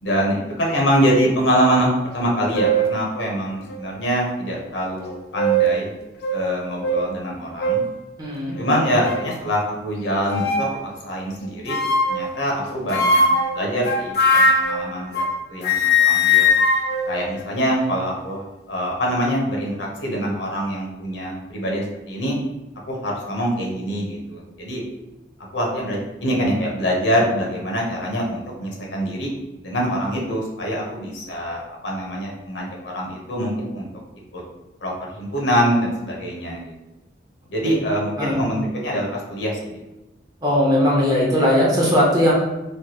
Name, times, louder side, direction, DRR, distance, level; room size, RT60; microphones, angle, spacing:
voice 1, 0.0-5.9 6.3-7.8 8.6-10.7 11.0-11.8 12.1-13.2 13.5-15.2 15.5-16.5 17.1-22.4 22.9-24.8 25.5-29.3 29.6-33.9 34.3-34.4 34.8-36.7 37.5-39.8, equal, 80° left, -2 dB, 0.9 m, -24 dB
sound 1, 2.1-2.2 2.5-2.9 3.7-3.8 5.0-5.8 6.2-6.4 6.8-7.0 7.6-7.9 8.5-9.3 10.3-10.7 11.7-12.3 12.9-15.4 15.6-18.0, left 1 dB, 55° left, 0.4 m, -20 dB
voice 2, 8.2-8.6 37.6-37.7 38.2-38.4 40.4-42.3, left 1 dB, 20° right, -4 dB, 0.6 m, -18 dB
3.2 x 2.2 x 2.9 m, 1.0 s
head